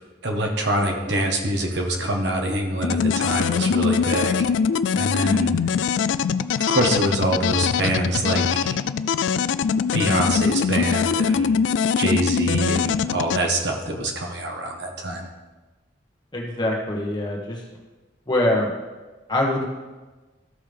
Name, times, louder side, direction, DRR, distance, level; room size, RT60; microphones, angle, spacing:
voice 1, 0.2-4.5 4.9-5.5 6.7-8.8 9.9-11.5 12.0-15.3, right 1 dB, 70° right, 2 dB, 1.3 m, -25 dB
sound 1, 2.8-13.4, left 6 dB, 85° left, 0.3 m, -22 dB
voice 2, 16.3-17.6 18.3-18.7 19.3-19.6, left 1 dB, 25° left, -1 dB, 1.3 m, -23 dB
13.5 x 5.6 x 3.4 m, 1.2 s
head